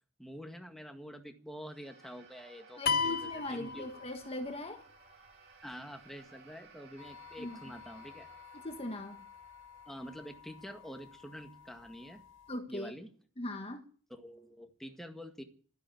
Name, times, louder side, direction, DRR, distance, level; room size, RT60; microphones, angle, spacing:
voice 1, 0.2-3.9 5.6-8.3 9.9-12.2 12.7-13.1 14.1-15.4, equal, ahead, 1.8 m, -47 dB
sound 1, 1.6-12.1, right 4 dB, 55° right, 7.2 m, -60 dB
voice 2, 2.8-4.8 7.4-7.6 8.5-9.2 12.5-12.9 13.4-13.8, left 1 dB, 30° left, 1.5 m, -40 dB
sound 2, 2.9-4.6, left 5 dB, 45° left, 0.8 m, -33 dB
sound 3, 7.0-12.6, left 8 dB, 60° left, 2.7 m, -54 dB
13.0 x 10.5 x 9.4 m
head